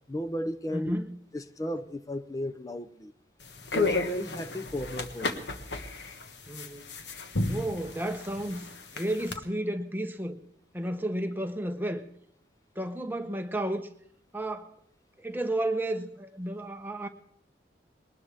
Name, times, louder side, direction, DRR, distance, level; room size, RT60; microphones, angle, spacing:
voice 1, 0.1-1.0 1.3-3.1 3.7-5.4, equal, 20° left, 0.6 m, -34 dB
voice 2, 0.7-1.2 6.5-6.9 7.5-10.4 10.7-12.0 12.8-13.9 14.3-14.7 15.2-17.1, right 1 dB, 10° right, 0.9 m, -32 dB
sound 1, 3.4-9.4, left 3 dB, 80° left, 1.4 m, -33 dB
20.5 x 19.5 x 3.5 m
head